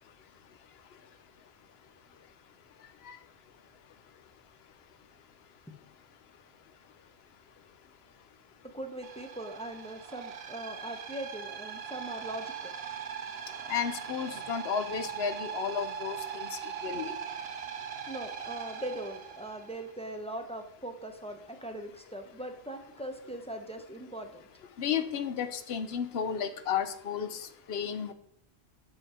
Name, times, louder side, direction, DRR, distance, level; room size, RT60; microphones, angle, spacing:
voice 1, 8.7-12.7 18.1-24.4, right 1 dB, 10° left, 5 dB, 0.4 m, -40 dB
sound 1, 9.0-19.8, right 7 dB, 70° right, 0.9 m, -40 dB
voice 2, 13.7-16.5 16.8-17.1 24.8-28.1, left 7 dB, 75° left, 10 dB, 0.9 m, -33 dB
7.2 x 5.7 x 4.2 m, 0.74 s
omnidirectional pair, 1.1 m